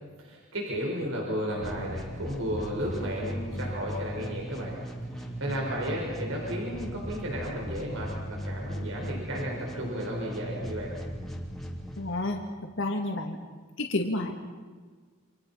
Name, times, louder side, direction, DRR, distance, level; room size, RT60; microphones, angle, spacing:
voice 1, 0.2-4.8 5.1-10.9, equal, 70° right, -1 dB, 5.5 m, -33 dB
sound 1, 1.6-12.5, equal, ahead, 2.9 m, -38 dB
voice 2, 12.0-12.4 12.8-13.4 13.8-14.4, left 2 dB, 60° left, 2 dB, 2.3 m, -30 dB
29.0 x 26.5 x 5.8 m, 1.5 s
head